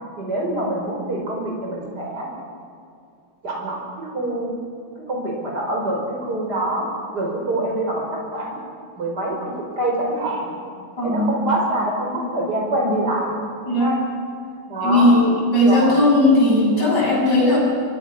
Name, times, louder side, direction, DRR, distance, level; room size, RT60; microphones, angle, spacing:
voice 1, 0.2-2.3 3.4-4.5 5.1-6.9 7.1-8.0 8.3-8.6 9.0-10.5 11.0-13.3 13.8-14.0 14.7-15.2 15.7-16.0, right 1 dB, 75° right, -1 dB, 5.5 m, -25 dB
voice 2, 11.0-11.5 13.7-13.9 14.8-17.6, left 1 dB, 85° left, -3 dB, 7.9 m, -17 dB
26.0 x 22.5 x 6.1 m, 2.4 s
omnidirectional pair, 1.8 m